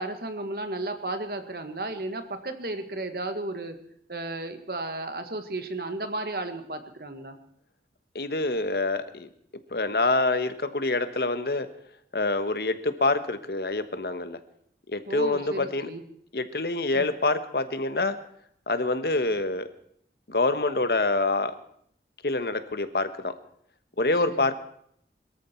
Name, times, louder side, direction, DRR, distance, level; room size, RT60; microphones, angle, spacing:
voice 1, 0.0-3.8 4.1-7.4 15.1-16.0 16.9-17.1 24.3-24.5, right 2 dB, 55° right, 7 dB, 1.7 m, -34 dB
voice 2, 8.1-9.3 9.7-11.7 12.1-14.4 14.9-15.9 16.3-18.2 18.7-19.7 20.3-21.5 22.2-23.3 24.0-24.5, left 2 dB, 60° left, 11 dB, 1.2 m, -26 dB
22.5 x 14.0 x 4.5 m, 0.68 s
head